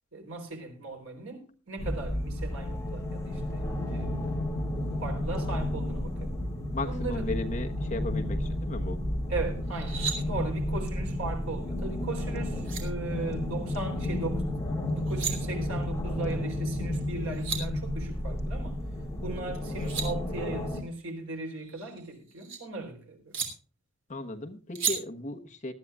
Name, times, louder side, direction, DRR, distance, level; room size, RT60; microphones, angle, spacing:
voice 1, 0.1-4.3 5.0-6.3 6.8-7.3 9.3-14.5 14.9-18.8 19.2-23.4, right 3 dB, 90° right, 3.8 m, -38 dB
sound 1, 1.8-20.8, left 1 dB, 15° left, 2.2 m, -32 dB
voice 2, 6.7-9.0 24.1-25.7, left 2 dB, 35° left, 1.2 m, -35 dB
sound 2, 9.7-10.2 12.2-12.3 12.6-12.8 14.9-15.3 17.0-17.1 17.3-17.6 19.5-20.1 21.6-22.6 23.3-23.5 24.8-25.0, right 7 dB, 65° right, 3.1 m, -33 dB
19.0 x 12.5 x 2.4 m
head